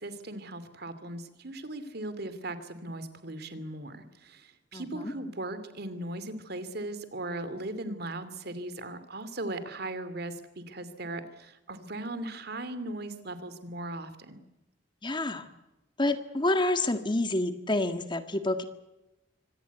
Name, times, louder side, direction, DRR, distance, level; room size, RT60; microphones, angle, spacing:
voice 1, 0.0-14.4, right 2 dB, 60° right, 12 dB, 2.7 m, -38 dB
voice 2, 4.7-5.1 15.0-15.5 16.0-18.6, left 2 dB, 25° left, 9 dB, 1.7 m, -28 dB
25.0 x 18.0 x 8.2 m, 0.99 s
head